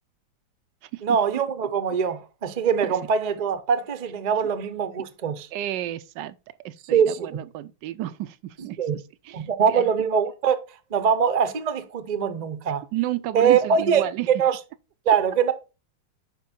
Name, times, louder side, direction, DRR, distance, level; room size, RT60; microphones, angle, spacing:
voice 1, 1.0-5.5 6.9-7.4 8.8-9.0 9.3-10.6 10.9-12.8 13.3-14.6 15.1-15.5, right 7 dB, 90° right, 0.3 m, -23 dB
voice 2, 5.5-6.3 6.6-9.9 12.9-14.3, right 14 dB, 75° right, 1.2 m, -32 dB
10.5 x 4.5 x 4.2 m
omnidirectional pair, 2.1 m